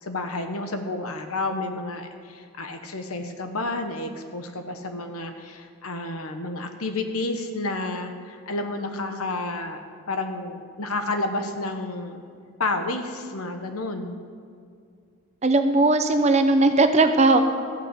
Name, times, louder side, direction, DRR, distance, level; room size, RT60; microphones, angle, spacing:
voice 1, 0.0-9.8 10.1-12.2 12.6-14.2, left 2 dB, 85° left, 6 dB, 1.2 m, -30 dB
voice 2, 15.4-17.5, right 2 dB, 30° right, 8 dB, 0.7 m, -18 dB
14.0 x 6.3 x 8.3 m, 2.3 s
head